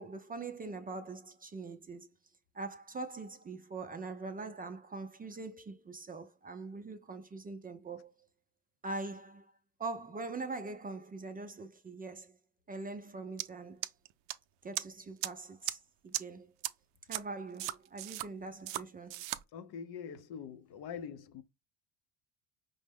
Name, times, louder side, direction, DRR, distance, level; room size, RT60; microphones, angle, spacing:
voice 1, 0.0-2.1 2.5-8.1 8.8-9.5 9.8-12.4 12.7-13.9 14.6-16.5 17.1-19.2, right 3 dB, 20° right, 0.5 m, -43 dB
sound 1, 13.4-13.5 13.8-14.3 14.8-14.9 15.2-15.3 15.7-15.8 16.1-16.2 16.6-16.7 17.1-17.2 17.6-18.3 18.7-18.8 19.1-19.4, right 15 dB, 75° right, 0.6 m, -35 dB
voice 2, 19.5-21.4, left 7 dB, 60° left, 0.7 m, -44 dB
5.3 x 2.1 x 3.4 m
supercardioid pair, 95°, 43 cm